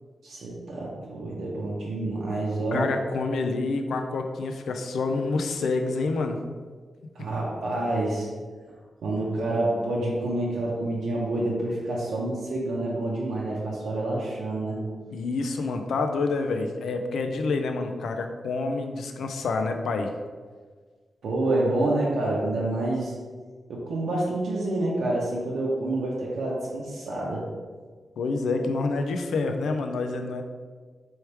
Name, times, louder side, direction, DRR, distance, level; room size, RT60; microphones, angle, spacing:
voice 1, 0.2-2.9 7.1-8.3 9.0-14.8 21.2-23.1 23.7-27.4, right 2 dB, 85° right, -5 dB, 0.7 m, -28 dB
voice 2, 2.7-6.4 15.1-20.1 28.2-30.4, left 3 dB, 90° left, 5 dB, 0.4 m, -28 dB
3.4 x 3.1 x 4.5 m, 1.5 s
wide cardioid pair, 140°, 0 cm